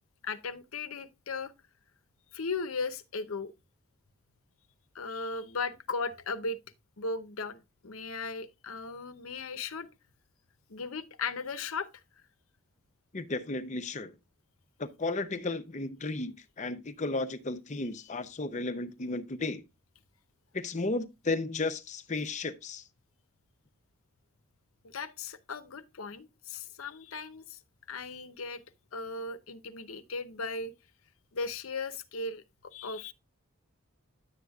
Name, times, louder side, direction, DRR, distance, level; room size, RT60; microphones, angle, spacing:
voice 1, 0.2-1.5 2.3-3.5 4.9-6.6 7.0-9.9 10.7-11.9 24.8-27.6 27.9-28.6 28.9-30.7 31.3-33.1, left 4 dB, 80° left, 0.8 m, -37 dB
voice 2, 13.1-14.1 14.8-19.6 20.5-22.8, left 3 dB, 35° left, 0.6 m, -34 dB
10.5 x 7.9 x 2.3 m
head